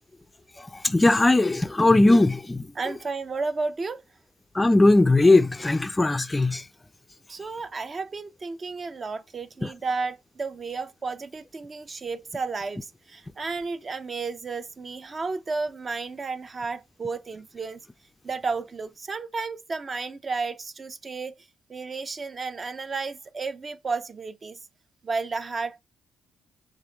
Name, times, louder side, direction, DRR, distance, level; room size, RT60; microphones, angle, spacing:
voice 1, 0.8-2.7 4.5-6.6 9.6-9.7, left 2 dB, 15° left, 0.4 m, -19 dB
voice 2, 2.7-4.0 7.3-17.8 18.2-21.4 21.7-24.6 25.0-25.8, right 4 dB, 35° right, 0.5 m, -32 dB
6.0 x 3.2 x 5.0 m
cardioid pair, 90°, 0 cm